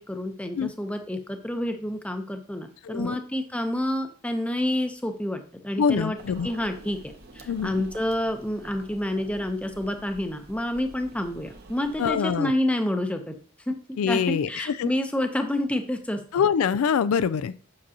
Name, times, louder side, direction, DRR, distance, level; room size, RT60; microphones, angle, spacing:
voice 1, 0.0-5.4 5.6-6.2 6.4-13.3 13.7-13.8 14.1-16.2, left 1 dB, 5° left, 6 dB, 0.6 m, -28 dB
voice 2, 2.8-3.2 5.8-6.5 7.5-7.7 12.0-12.5 14.0-14.9 16.3-17.5, left 7 dB, 80° left, 16 dB, 0.3 m, -24 dB
sound 1, 6.2-12.1, right 2 dB, 45° right, 0.8 m, -47 dB
7.6 x 6.0 x 2.8 m, 0.42 s
head